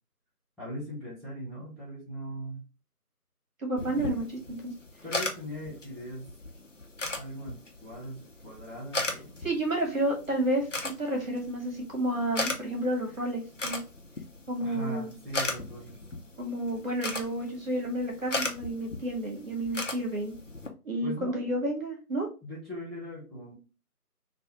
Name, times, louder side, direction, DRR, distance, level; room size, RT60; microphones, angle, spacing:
voice 1, 0.6-2.7 5.0-6.3 7.2-9.3 14.6-16.0 21.0-21.4 22.4-23.5, equal, ahead, -13 dB, 0.7 m, -40 dB
voice 2, 3.6-4.7 9.4-13.8 14.5-15.1 16.4-20.3 20.8-22.3, right 1 dB, 60° right, 0 dB, 1.5 m, -31 dB
sound 1, 3.8-20.7, left 2 dB, 55° left, 0.6 m, -38 dB
3.3 x 2.2 x 2.9 m, 0.32 s
figure-of-eight pair, 175°, 46 cm